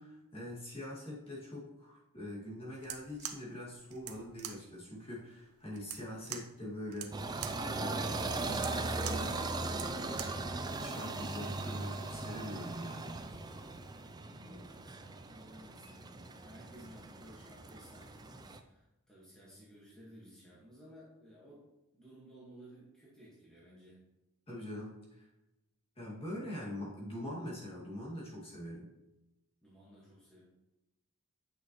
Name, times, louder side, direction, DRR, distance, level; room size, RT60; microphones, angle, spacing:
voice 1, 0.0-10.0 10.8-13.2 24.5-25.3 26.0-28.9, left 1 dB, 25° left, -5 dB, 2.2 m, -44 dB
sound 1, 2.8-10.5, right 10 dB, 75° right, 0.8 m, -46 dB
sound 2, 7.1-18.6, right 2 dB, 20° right, 0.4 m, -39 dB
sound 3, 10.5-14.2, left 4 dB, 80° left, 1.6 m, -63 dB
voice 2, 14.2-21.7 21.9-24.0 29.6-30.4, equal, 5° left, -8 dB, 1.6 m, -56 dB
9.0 x 6.1 x 3.1 m, 0.98 s
head